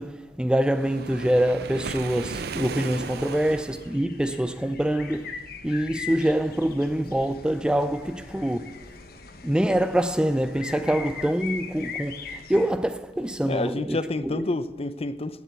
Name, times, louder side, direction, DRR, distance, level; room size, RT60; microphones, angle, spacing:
voice 1, 0.0-8.9 9.4-14.5, right 1 dB, 5° right, 0.3 m, -25 dB
Waves surf, 0.7-4.0, right 4 dB, 60° right, 0.6 m, -36 dB
sound 1, 2.3-12.7, left 5 dB, 55° left, 1.2 m, -41 dB
voice 2, 13.5-15.4, left 2 dB, 35° left, 0.6 m, -29 dB
17.0 x 7.4 x 8.2 m
head